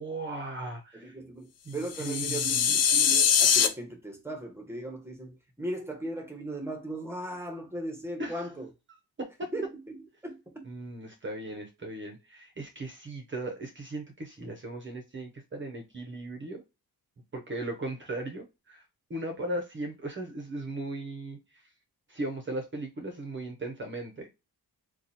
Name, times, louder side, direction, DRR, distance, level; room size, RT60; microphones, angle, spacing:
voice 1, 0.0-1.2 1.6-2.8 8.2-8.5 9.2-9.5 10.6-16.6 17.3-18.8 19.1-21.7 22.1-24.3, right 2 dB, 30° right, 0.7 m, -37 dB
voice 2, 0.9-8.7 9.5-10.0 10.2-10.6, right 1 dB, 5° right, 0.9 m, -38 dB
sound 1, 1.9-3.7, left 7 dB, 45° left, 0.5 m, -23 dB
2.8 x 2.3 x 4.0 m
wide cardioid pair, 135°, 38 cm